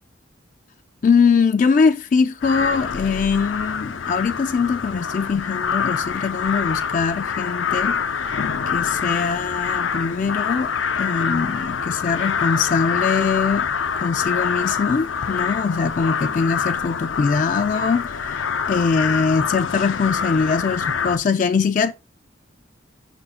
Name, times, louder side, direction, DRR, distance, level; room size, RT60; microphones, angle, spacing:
voice 1, 1.0-8.0 8.7-10.7 11.0-13.7 14.0-21.9, left 5 dB, 40° left, 0.3 m, -22 dB
sound 1, 2.4-21.2, left 6 dB, 85° left, 0.6 m, -25 dB
5.7 x 4.3 x 4.1 m
head